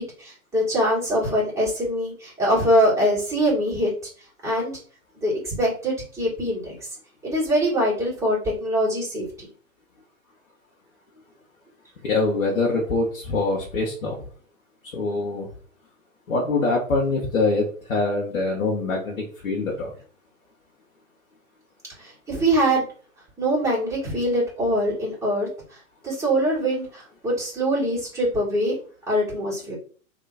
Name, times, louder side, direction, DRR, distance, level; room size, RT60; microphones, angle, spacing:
voice 1, 0.0-3.9 4.4-4.8 5.2-6.7 7.2-9.3 22.0-22.8 23.4-25.5 26.0-28.7 29.1-29.8, equal, 5° right, -6 dB, 1.9 m, -23 dB
voice 2, 12.0-14.2 14.9-15.4 16.3-19.9, left 3 dB, 65° left, -2 dB, 1.3 m, -24 dB
3.4 x 2.9 x 4.1 m, 0.42 s
figure-of-eight pair, 110°, 43 cm